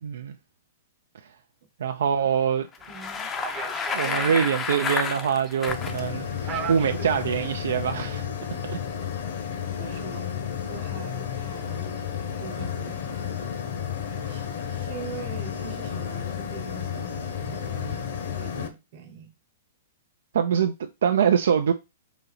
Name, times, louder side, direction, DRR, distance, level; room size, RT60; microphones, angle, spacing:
voice 1, 0.0-0.4 1.8-2.7 3.9-8.3 8.7-8.8 14.2-14.3 20.3-20.7 21.0-21.7, right 7 dB, 80° right, 0.4 m, -24 dB
Bicycle, 2.7-6.0, left 6 dB, 15° left, 0.5 m, -30 dB
sound 1, 2.8-8.7, right 7 dB, 25° right, 0.7 m, -40 dB
voice 2, 2.9-3.3 4.0-4.6 9.8-10.3 10.7-11.9 12.4-13.5 14.0-18.0 18.4-19.3, right 6 dB, 45° right, 1.0 m, -43 dB
sound 2, 5.7-18.7, left 8 dB, 55° left, 0.8 m, -32 dB
4.0 x 2.8 x 4.0 m
hypercardioid pair, 155°, 0 cm